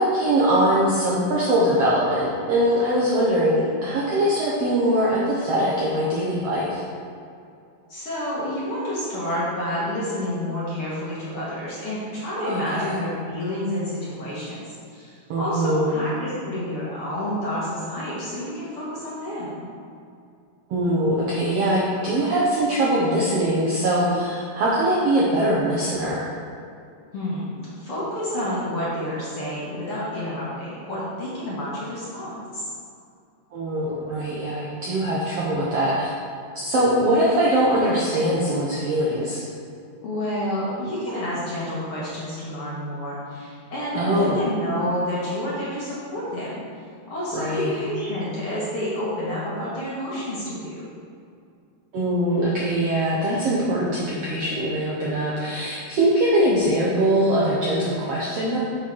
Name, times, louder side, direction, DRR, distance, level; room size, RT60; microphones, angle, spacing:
voice 1, 0.0-6.8 12.4-13.0 15.3-15.9 20.7-26.3 33.5-36.1 36.5-39.4 43.9-44.4 47.3-47.7 51.9-58.6, right 1 dB, 70° right, -6 dB, 1.5 m, -22 dB
voice 2, 7.9-19.7 27.1-32.7 40.0-46.6 47.1-50.8, left 1 dB, 55° left, -8 dB, 1.8 m, -29 dB
7.1 x 5.7 x 4.6 m, 2.5 s
omnidirectional pair, 3.9 m